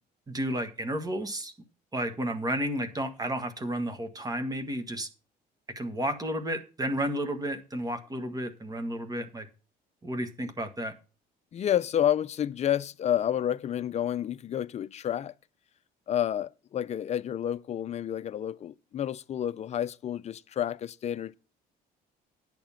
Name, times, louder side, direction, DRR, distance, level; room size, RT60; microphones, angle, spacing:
voice 1, 0.3-1.5 1.9-5.1 5.8-9.5 10.0-10.9, right 1 dB, 20° right, 1.6 m, -32 dB
voice 2, 11.5-15.3 16.1-21.3, left 10 dB, 40° left, 0.5 m, -30 dB
10.5 x 7.2 x 5.7 m
cardioid pair, 110°, 17 cm